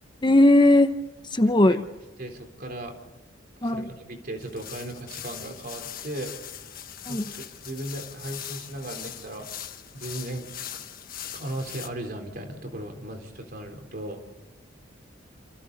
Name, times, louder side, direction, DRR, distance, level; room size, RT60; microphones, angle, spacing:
voice 1, 0.2-0.9 1.3-1.8 3.6-3.9 7.1-7.3, left 1 dB, 25° left, 9 dB, 0.9 m, -18 dB
voice 2, 2.2-3.0 3.6-6.3 7.1-9.5 9.9-10.8 11.3-14.2, right 1 dB, 50° right, 4 dB, 3.8 m, -37 dB
sound 1, 4.4-11.9, left 10 dB, 50° left, 1.5 m, -40 dB
28.5 x 28.0 x 4.0 m, 1.1 s
head